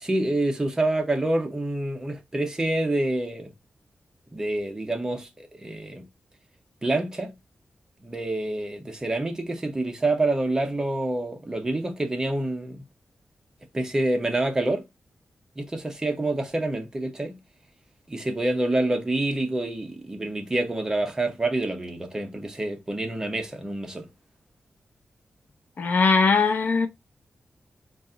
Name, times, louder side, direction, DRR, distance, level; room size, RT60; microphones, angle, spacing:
voice 1, 0.0-3.5 4.3-6.1 6.8-7.3 8.0-12.8 13.7-14.8 15.6-17.4 18.1-24.1, right 2 dB, 15° right, 0.7 m, -27 dB
voice 2, 25.8-26.9, left 4 dB, 50° left, 0.5 m, -20 dB
3.9 x 2.4 x 3.7 m
wide cardioid pair, 175°, 4 cm